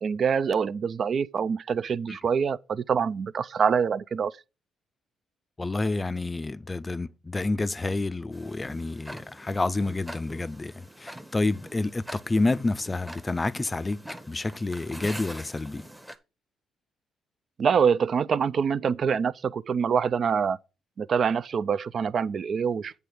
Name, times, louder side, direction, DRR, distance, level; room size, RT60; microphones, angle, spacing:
voice 1, 0.0-4.4 17.6-20.6 21.0-22.9, right 6 dB, 55° right, 0.3 m, -25 dB
voice 2, 5.6-15.8, left 2 dB, 20° left, 0.4 m, -29 dB
Tick-tock, 8.3-16.2, equal, 5° right, 0.8 m, -44 dB
8.4 x 3.4 x 6.3 m
cardioid pair, 90°, 0 cm